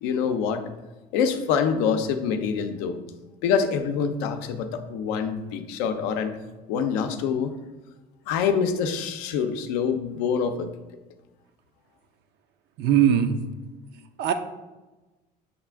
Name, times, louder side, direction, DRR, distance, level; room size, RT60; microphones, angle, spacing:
voice 1, 0.0-0.6 1.1-3.0 3.4-6.4 6.7-7.5 8.3-10.7, left 6 dB, 75° left, 8 dB, 0.5 m, -25 dB
voice 2, 12.8-13.4 14.2-14.3, right 9 dB, 55° right, 7 dB, 0.4 m, -20 dB
6.4 x 2.4 x 3.4 m, 1.1 s
hypercardioid pair, 75°, 21 cm